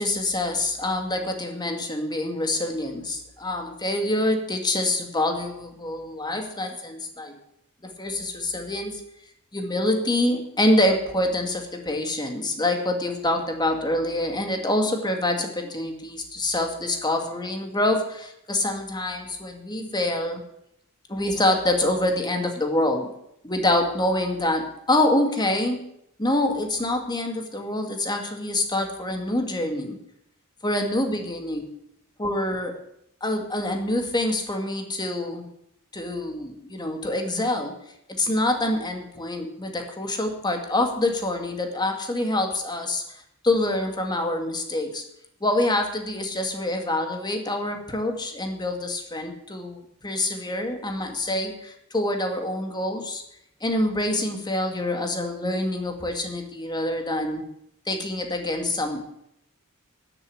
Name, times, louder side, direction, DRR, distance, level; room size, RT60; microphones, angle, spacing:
voice 1, 0.0-7.4 7.8-9.0 9.5-20.4 21.1-23.1 23.4-25.8 26.2-30.0 30.6-31.6 32.2-32.7 33.2-35.4 35.9-37.7 38.2-45.0 45.4-53.2 53.6-57.4 57.9-59.0, left 1 dB, 20° left, 4 dB, 2.4 m, -26 dB
13.0 x 8.3 x 9.8 m, 0.77 s
head